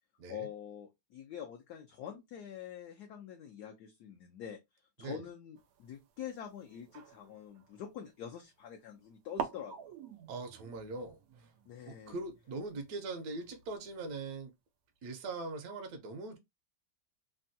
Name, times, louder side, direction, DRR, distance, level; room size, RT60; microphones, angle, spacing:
voice 1, 0.3-4.6 5.0-9.9 11.7-12.2, left 9 dB, 70° left, 1.0 m, -45 dB
sound 1, 5.6-8.5 9.1-9.2 9.4-14.0, right 6 dB, 85° right, 0.7 m, -47 dB
voice 2, 10.3-11.5 11.9-14.5 15.0-16.4, right 3 dB, 70° right, 1.0 m, -41 dB
3.4 x 2.2 x 2.6 m
omnidirectional pair, 2.1 m